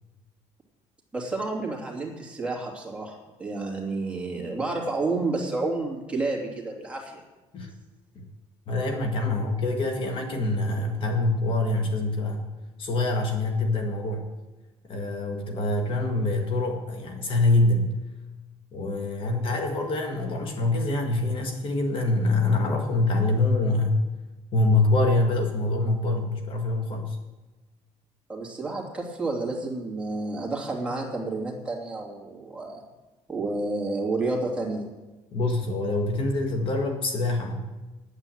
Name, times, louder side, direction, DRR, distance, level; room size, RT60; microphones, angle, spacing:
voice 1, 1.1-7.2 28.3-32.8 33.3-34.9, right 3 dB, 10° right, -2 dB, 2.7 m, -30 dB
voice 2, 8.7-12.5 12.8-14.3 14.9-17.9 18.7-24.0 24.5-27.2 35.3-37.7, left 2 dB, 45° left, 4 dB, 1.5 m, -25 dB
9.8 x 9.0 x 7.6 m, 1.1 s
cardioid pair, 135°, 12 cm